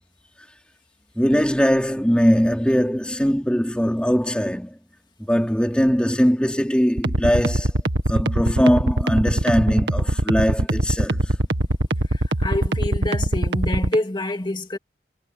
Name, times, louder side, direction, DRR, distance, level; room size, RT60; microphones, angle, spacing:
voice 1, 1.2-4.7 5.3-7.7 8.1-11.2, equal, 5° left, 4.5 m, -20 dB
sound 1, 7.0-14.0, right 1 dB, 80° right, 2.0 m, -22 dB
voice 2, 12.1-14.8, left 1 dB, 25° left, 2.4 m, -27 dB
head